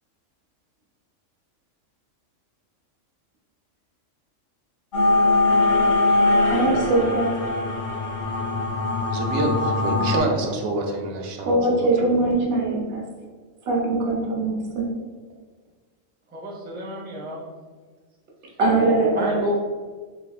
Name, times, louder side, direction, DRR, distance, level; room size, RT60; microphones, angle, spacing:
sound 1, 4.9-10.2, left 2 dB, 55° left, 0.7 m, -21 dB
voice 1, 6.5-7.3 11.4-13.0 13.7-14.9 18.6-19.5, right 2 dB, 55° right, -1 dB, 0.9 m, -21 dB
voice 2, 9.1-12.2, right 2 dB, 90° right, 2 dB, 1.0 m, -27 dB
voice 3, 16.3-17.4 19.1-19.6, equal, 15° right, -3 dB, 0.3 m, -30 dB
3.5 x 3.3 x 2.3 m, 1.5 s
omnidirectional pair, 1.4 m